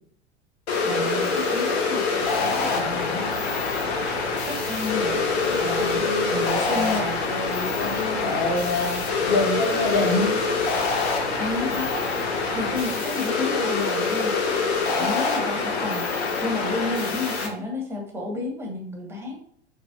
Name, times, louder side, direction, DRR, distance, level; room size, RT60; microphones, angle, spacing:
sound 1, 0.7-17.5, left 4 dB, 65° left, 0.8 m, -25 dB
voice 1, 0.8-2.0 4.5-5.3 5.6-7.2 11.4-12.1 12.5-14.3 15.0-19.4, left 2 dB, 5° right, 1 dB, 0.7 m, -31 dB
sound 2, 2.2-12.9, right 9 dB, 65° right, 0.5 m, -42 dB
voice 2, 2.4-3.4 5.5-6.3 6.7-7.0 7.3-9.0 9.3-10.3, left 2 dB, 30° left, -3 dB, 0.8 m, -27 dB
3.0 x 2.5 x 2.6 m, 0.64 s
figure-of-eight pair, 85°, 34 cm